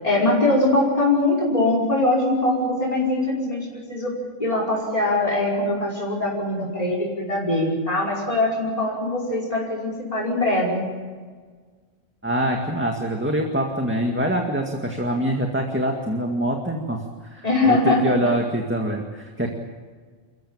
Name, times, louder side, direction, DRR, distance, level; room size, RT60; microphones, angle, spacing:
voice 1, 0.0-4.1 4.4-10.8 17.4-18.0, left 2 dB, 30° left, -5 dB, 5.4 m, -22 dB
voice 2, 12.2-17.0 17.3-19.5, right 1 dB, 10° right, 2 dB, 2.0 m, -24 dB
29.0 x 15.0 x 8.9 m, 1.6 s
omnidirectional pair, 1.4 m